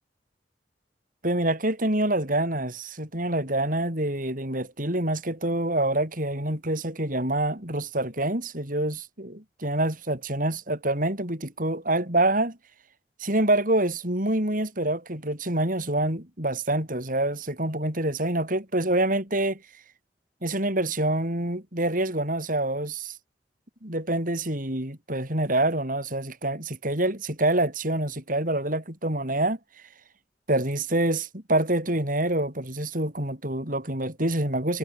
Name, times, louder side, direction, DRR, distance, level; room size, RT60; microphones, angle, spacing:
voice 1, 1.2-12.6 13.2-19.6 20.4-23.1 23.8-29.6 30.5-34.8, right 1 dB, 50° right, 7.8 m, -26 dB
head